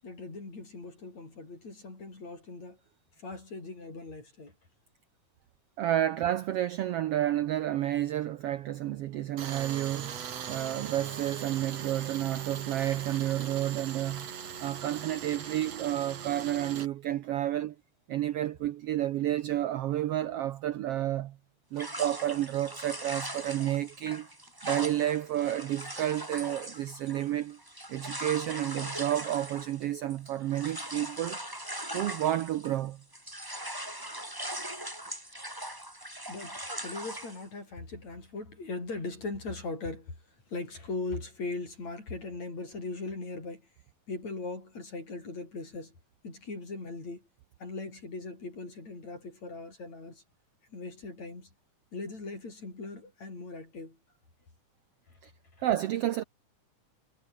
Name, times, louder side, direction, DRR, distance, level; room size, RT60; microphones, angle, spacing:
voice 1, 0.0-2.8 3.2-4.5 36.3-43.7 44.1-46.0 46.2-47.3 47.6-50.2 50.7-51.5 51.9-54.0 55.5-55.6, left 3 dB, 60° left, 8.8 m, -39 dB
voice 2, 5.8-14.3 14.6-17.7 18.1-21.4 21.7-24.3 24.6-27.6 27.9-31.4 31.9-33.0 55.2-55.3 55.6-56.2, right 12 dB, 75° right, 1.4 m, -30 dB
Tools, 9.4-16.9, right 8 dB, 55° right, 3.2 m, -40 dB
sound 1, 21.8-32.9 33.1-37.4, right 1 dB, 5° right, 4.6 m, -40 dB
omnidirectional pair, 3.6 m